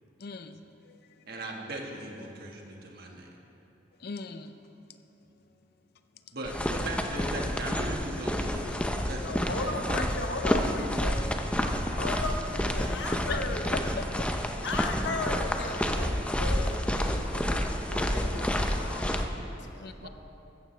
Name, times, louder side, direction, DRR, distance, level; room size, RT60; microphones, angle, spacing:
voice 1, 0.2-1.0 4.0-4.5 13.3-13.4 14.0-14.3 19.8-20.1, left 4 dB, 55° left, 9 dB, 0.5 m, -39 dB
voice 2, 1.3-3.3 6.3-10.1 20.0-20.1, right 1 dB, 55° right, 0 dB, 1.6 m, -38 dB
sound 1, 6.5-19.2, equal, 5° left, 0.6 m, -29 dB
voice 3, 9.2-11.2 11.5-13.7 14.6-19.3 19.7-19.9, left 2 dB, 75° left, 4 dB, 1.1 m, -36 dB
15.5 x 13.5 x 3.3 m, 2.9 s
head